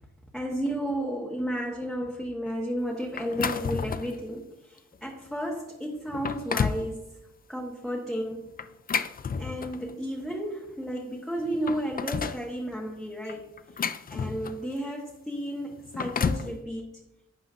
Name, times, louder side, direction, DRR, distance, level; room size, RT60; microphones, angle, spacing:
voice 1, 0.3-7.1 7.5-8.5 9.4-17.0, equal, ahead, -3 dB, 1.1 m, -33 dB
sound 1, 3.2-4.2 4.8-4.9 5.6-5.7 6.1-6.9 8.6-9.9 11.0-11.1 11.4-12.4 13.3-14.7 15.7-16.5, left 6 dB, 30° left, 0.4 m, -31 dB
11.5 x 9.5 x 2.5 m, 0.91 s
wide cardioid pair, 160°, 29 cm